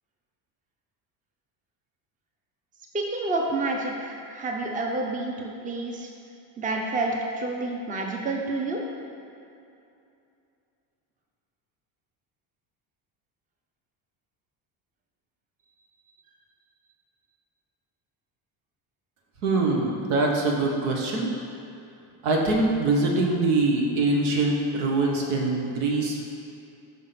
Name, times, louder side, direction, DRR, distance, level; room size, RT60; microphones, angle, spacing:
voice 1, 2.9-6.1 6.6-8.8, right 2 dB, 15° right, 0 dB, 0.6 m, -29 dB
voice 2, 19.4-21.3 22.2-26.3, right 2 dB, 85° right, 0 dB, 1.2 m, -23 dB
5.6 x 3.7 x 5.7 m, 2.6 s
cardioid pair, 115°, 47 cm